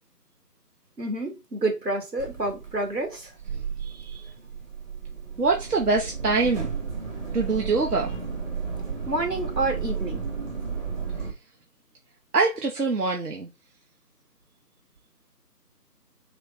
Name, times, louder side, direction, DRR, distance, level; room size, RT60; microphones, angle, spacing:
voice 1, 1.0-3.3 9.1-10.2, right 2 dB, 85° right, 1.6 m, -28 dB
sound 1, 2.2-11.3, right 5 dB, 50° right, 1.2 m, -33 dB
voice 2, 3.8-4.3 5.4-6.7 7.3-8.2 12.3-13.5, right 3 dB, 70° right, 0.8 m, -24 dB
3.4 x 3.0 x 2.5 m
figure-of-eight pair, 155°, 48 cm